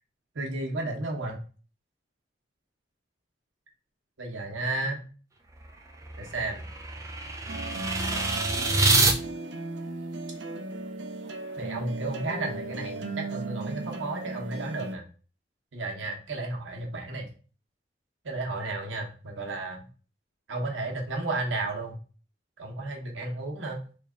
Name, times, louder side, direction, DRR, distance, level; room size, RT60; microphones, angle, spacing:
voice 1, 0.3-1.4 4.2-5.1 6.2-6.6 8.1-8.3 11.6-15.0 15.7-17.3 18.2-19.9 20.5-22.0 22.6-23.8, right 2 dB, 90° right, 1 dB, 0.9 m, -33 dB
sound 1, 5.5-9.1, right 2 dB, 15° right, 0.4 m, -26 dB
sound 2, 7.5-15.0, right 2 dB, 70° right, 0.5 m, -36 dB
3.3 x 2.3 x 3.5 m, 0.38 s
head